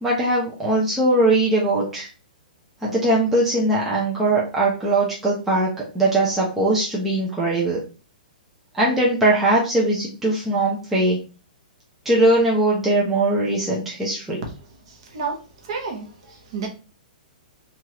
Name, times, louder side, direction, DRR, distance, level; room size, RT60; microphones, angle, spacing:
voice 1, 0.0-2.1 2.8-7.8 8.7-11.2 12.1-14.4, right 2 dB, 5° right, 0.4 m, -20 dB
voice 2, 14.9-15.4 15.6-16.7, right 4 dB, 35° right, 0.7 m, -31 dB
3.1 x 2.3 x 2.8 m
hypercardioid pair, 180°, 5 cm